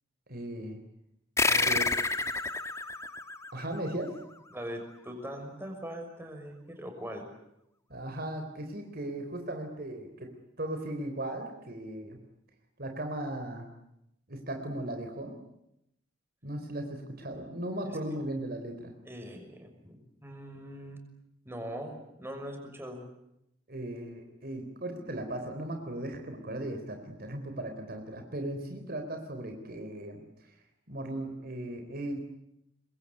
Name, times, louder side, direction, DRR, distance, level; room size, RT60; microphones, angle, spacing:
voice 1, 0.3-0.8 1.6-1.8 3.5-4.1 7.9-10.3 10.6-12.2 12.8-13.7 14.3-15.4 16.4-18.9 23.7-30.2 30.9-32.2, right 1 dB, 55° right, 5 dB, 3.8 m, -37 dB
sound 1, 1.4-4.3, left 3 dB, 15° left, 1.3 m, -29 dB
voice 2, 1.4-1.7 4.5-7.3 17.9-18.0 19.0-21.0 21.4-23.0, equal, 15° right, 4 dB, 6.2 m, -41 dB
26.0 x 22.0 x 9.8 m, 0.81 s
head